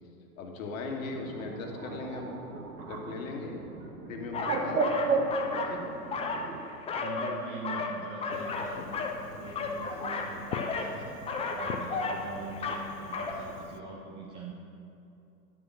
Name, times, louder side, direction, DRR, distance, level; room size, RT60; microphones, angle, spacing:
voice 1, 0.4-2.4 2.8-3.7 4.0-5.0 5.7-5.8, left 3 dB, 60° left, 2 dB, 1.7 m, -38 dB
Bird, 1.1-6.6, right 3 dB, 75° right, 1.4 m, -34 dB
sound 1, 4.3-5.8 6.0-7.4 7.6-9.2 9.5-10.9 11.3-12.2 12.5-12.9 13.1-13.3, left 4 dB, 15° left, 0.7 m, -33 dB
voice 2, 7.0-8.8 9.4-11.2 11.5-14.5, right 3 dB, 15° right, -2 dB, 0.3 m, -42 dB
Fireworks, 8.3-13.8, left 7 dB, 85° left, 0.7 m, -43 dB
11.0 x 6.6 x 6.2 m, 2.8 s
hypercardioid pair, 110°, 46 cm